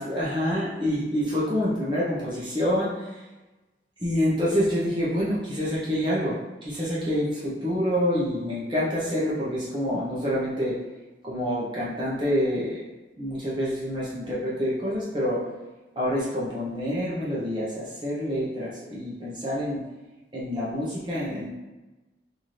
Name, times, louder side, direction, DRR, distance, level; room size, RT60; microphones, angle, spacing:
voice 1, 0.0-3.2 4.0-10.8 11.2-12.8 13.2-15.5 16.0-19.8 20.3-21.5, equal, 25° right, -8 dB, 0.7 m, -27 dB
4.1 x 2.7 x 3.1 m, 1.1 s
head